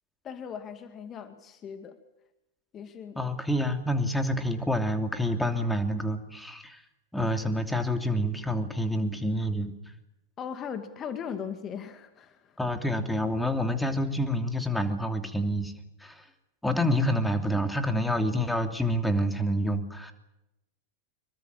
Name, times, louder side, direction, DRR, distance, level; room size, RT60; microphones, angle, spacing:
voice 1, 0.2-2.0 2.7-3.3 10.4-12.6, left 7 dB, 30° left, 8 dB, 2.2 m, -38 dB
voice 2, 3.2-6.8 7.1-9.7 12.6-15.7 16.0-16.3 16.6-20.1, equal, 5° left, 6 dB, 3.0 m, -28 dB
26.5 x 23.0 x 7.5 m, 0.90 s
figure-of-eight pair, 90°, 0 cm